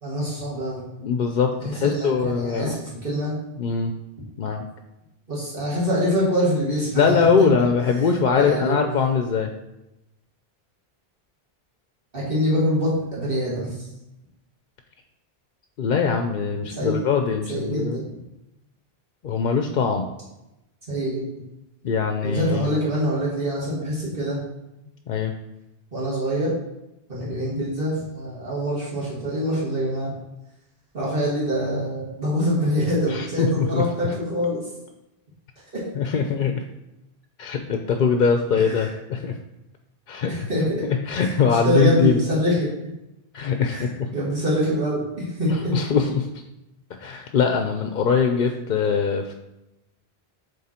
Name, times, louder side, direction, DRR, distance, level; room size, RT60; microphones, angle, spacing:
voice 1, 0.0-0.9 1.6-3.4 5.3-7.5 8.3-8.8 12.1-13.8 16.7-17.0 17.5-18.1 20.9-21.5 22.2-24.4 25.9-26.6 27.1-30.2 30.9-34.6 35.7-35.8 38.5-38.9 40.3-40.8 41.2-41.4 41.6-42.7 43.7-43.9 44.1-45.7, equal, 60° right, -7 dB, 2.2 m, -25 dB
voice 2, 1.0-2.8 3.6-3.9 4.4-4.7 6.9-9.5 15.8-18.0 19.2-20.1 21.8-22.7 25.1-25.3 33.1-33.8 36.0-36.6 37.4-39.4 40.1-40.5 41.1-42.2 43.3-44.1 45.7-46.3 46.9-49.3, left 6 dB, 60° left, 5 dB, 0.7 m, -22 dB
7.5 x 3.4 x 4.3 m, 0.91 s
omnidirectional pair, 1.0 m